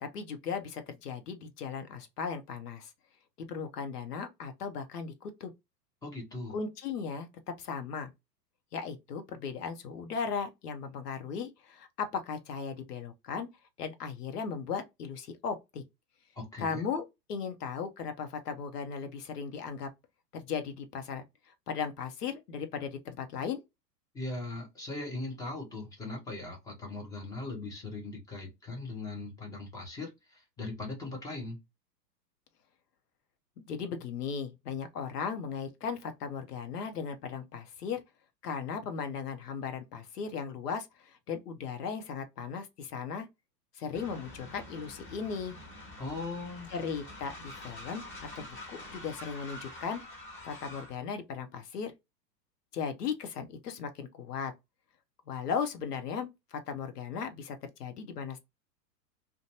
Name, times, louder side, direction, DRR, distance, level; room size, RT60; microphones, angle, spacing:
voice 1, 0.0-2.9 3.4-5.5 6.5-8.1 8.7-13.5 13.8-15.8 16.6-19.9 20.3-23.6 33.6-38.0 38.4-43.3 43.7-45.6 46.7-48.0 48.4-50.0 50.4-51.9 52.7-54.5 55.3-58.4, left 6 dB, 65° left, 0.8 m, -37 dB
voice 2, 6.0-6.5 16.4-16.9 24.1-31.6 46.0-46.7, left 2 dB, 5° left, 0.6 m, -39 dB
Train, 43.9-51.0, left 1 dB, 25° left, 1.4 m, -46 dB
2.5 x 2.2 x 2.8 m
figure-of-eight pair, 105°, 50 cm